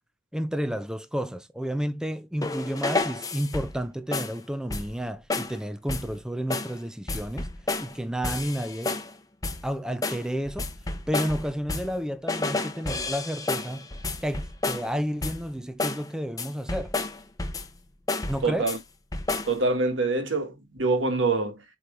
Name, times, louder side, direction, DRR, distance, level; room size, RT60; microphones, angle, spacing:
voice 1, 0.3-7.5 7.8-9.0 9.6-10.7 11.1-13.9 14.2-16.9 18.3-18.6, equal, 5° right, 0.5 m, -31 dB
sound 1, 2.4-3.8 4.1-4.4 4.7-5.0 5.3-5.6 5.9-6.2 6.5-6.8 7.1-8.0 8.2-9.1 9.4-9.7 10.0-12.0 12.3-14.9 15.2-15.5 15.8-16.1 16.4-17.8 18.1-18.8 19.1-19.6, left 3 dB, 20° left, 0.8 m, -31 dB
voice 2, 18.4-18.8 19.5-21.6, right 3 dB, 75° right, 1.6 m, -25 dB
7.8 x 3.2 x 3.8 m
head